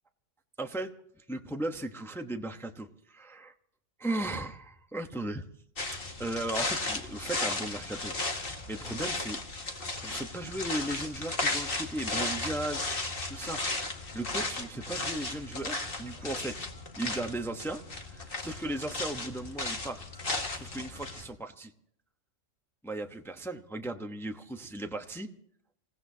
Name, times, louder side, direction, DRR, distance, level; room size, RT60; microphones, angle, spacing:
voice 1, 0.6-0.9 1.3-3.5 4.0-5.4 6.2-9.4 10.0-16.6 17.0-17.8 18.1-20.0 20.5-21.7 22.8-25.3, right 1 dB, ahead, 5 dB, 0.9 m, -36 dB
sound 1, 5.8-21.3, left 2 dB, 45° left, 2.0 m, -35 dB
27.5 x 17.0 x 2.8 m, 0.65 s
omnidirectional pair, 1.4 m